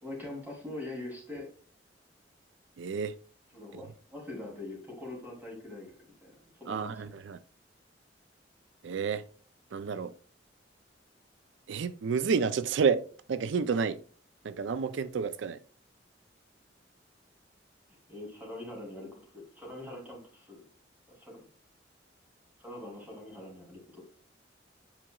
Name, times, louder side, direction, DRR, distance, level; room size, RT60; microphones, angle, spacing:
voice 1, 0.0-1.5 3.5-5.9 6.2-7.1 18.1-20.6 21.1-21.4 22.6-24.0, left 2 dB, 10° right, 3.1 m, -43 dB
voice 2, 2.8-3.1 6.7-7.4 8.8-9.2 9.7-10.1 11.7-13.0 13.3-14.0 14.4-15.6, right 6 dB, 85° right, 0.4 m, -30 dB
8.8 x 4.8 x 2.3 m
head